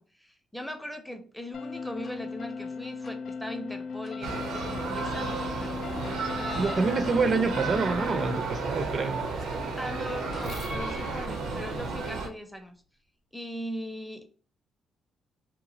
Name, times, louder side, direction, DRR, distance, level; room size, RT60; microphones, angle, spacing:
voice 1, 0.0-5.8 6.4-6.8 9.8-12.8 13.3-14.2, equal, 5° left, 6 dB, 0.6 m, -39 dB
sound 1, 1.5-8.4, left 5 dB, 65° left, 0.3 m, -37 dB
sound 2, 2.0-2.1 3.0-3.1 4.0-4.1 5.0-5.2 6.0-6.1 7.0-7.1 8.0-8.2 8.7-12.6, left 1 dB, 45° left, 0.7 m, -47 dB
sound 3, 4.2-12.3, right 3 dB, 90° right, 0.7 m, -33 dB
voice 2, 6.6-9.2, right 4 dB, 45° right, 8 dB, 0.4 m, -27 dB
2.9 x 2.3 x 2.7 m, 0.41 s
cardioid pair, 90°, 0 cm